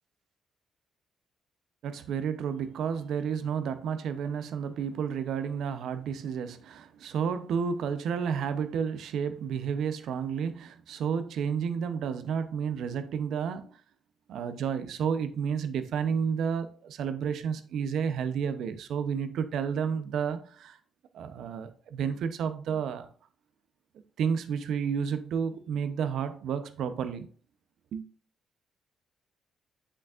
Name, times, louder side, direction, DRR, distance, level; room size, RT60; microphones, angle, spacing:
voice 1, 1.8-13.8 14.3-20.8 21.1-23.1 24.2-27.3 27.9-28.0, right 7 dB, 75° right, 0.7 m, -31 dB
7.8 x 6.2 x 2.5 m
cardioid pair, 90°, 0 cm